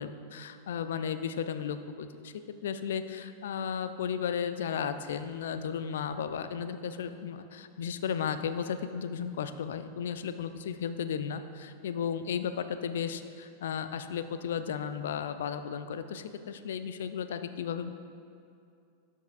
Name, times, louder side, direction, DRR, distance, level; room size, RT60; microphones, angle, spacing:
voice 1, 0.0-2.3 2.6-17.9, left 7 dB, 60° left, 11 dB, 0.3 m, -34 dB
12.0 x 5.5 x 2.4 m, 2.4 s
figure-of-eight pair, 90°, 0 cm